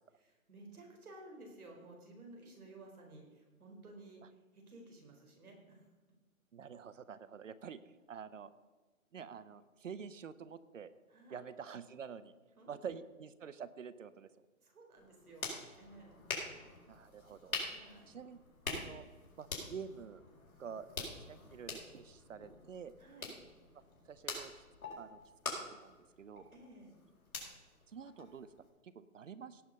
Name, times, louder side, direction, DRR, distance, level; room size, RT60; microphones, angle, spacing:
voice 1, 0.2-5.9 11.1-11.4 12.6-12.9 14.6-16.3 17.6-18.1 23.0-23.3 26.5-26.9, right 2 dB, 90° right, 1 dB, 4.3 m, -55 dB
voice 2, 6.5-7.8 8.1-8.5 9.1-10.9 11.3-12.3 12.7-14.3 16.9-17.6 18.1-18.4 18.7-19.1 19.4-20.2 20.6-22.9 24.0-24.6 25.0-25.2 25.4-26.5 27.9-28.5 28.8-29.6, right 7 dB, 60° right, 15 dB, 0.8 m, -48 dB
sound 1, 15.0-28.7, left 3 dB, 70° left, 4.2 m, -46 dB
17.0 x 5.9 x 5.5 m, 1.3 s
hypercardioid pair, 170°, 43 cm